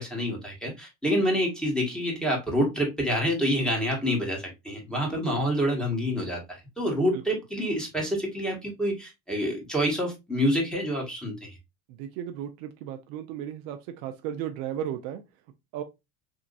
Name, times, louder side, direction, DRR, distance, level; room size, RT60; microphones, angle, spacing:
voice 1, 0.0-11.4, equal, ahead, 1.6 m, -27 dB
voice 2, 11.9-15.2 15.7-15.8, right 10 dB, 65° right, 0.7 m, -35 dB
3.5 x 2.8 x 2.6 m
supercardioid pair, 95°, 46 cm